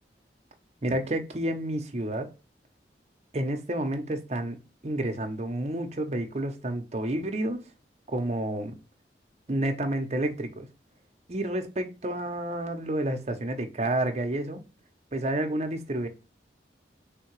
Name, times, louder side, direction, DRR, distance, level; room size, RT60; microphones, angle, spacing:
voice 1, 0.8-2.3 3.3-7.6 8.1-8.8 9.5-10.7 11.3-14.6 15.1-16.1, right 1 dB, 35° right, 0.7 m, -30 dB
3.5 x 2.8 x 4.6 m
head